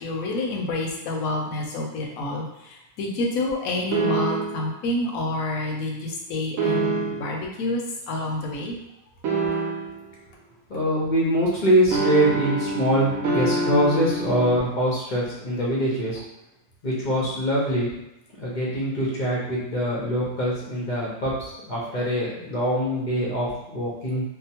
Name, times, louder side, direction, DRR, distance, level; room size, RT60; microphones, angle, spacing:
voice 1, 0.0-8.7, left 2 dB, 70° left, -1 dB, 0.9 m, -28 dB
sound 1, 3.9-4.7 6.6-7.4 9.2-10.1 11.9-14.6, right 2 dB, 70° right, 1.0 m, -26 dB
voice 2, 10.7-16.2 16.8-17.9 18.4-24.2, equal, 50° left, -6 dB, 0.5 m, -24 dB
2.8 x 2.0 x 2.8 m, 0.89 s
omnidirectional pair, 1.6 m